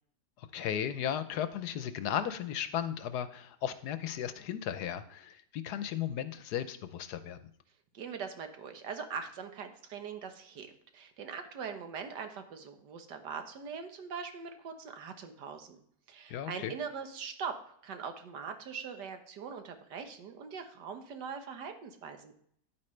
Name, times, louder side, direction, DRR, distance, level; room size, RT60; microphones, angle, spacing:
voice 1, 0.4-7.4 16.3-16.7, left 10 dB, 75° left, 12 dB, 1.2 m, -35 dB
voice 2, 7.9-15.8 16.1-22.3, right 6 dB, 80° right, 6 dB, 1.7 m, -42 dB
10.5 x 8.6 x 3.2 m, 0.65 s
omnidirectional pair, 1.8 m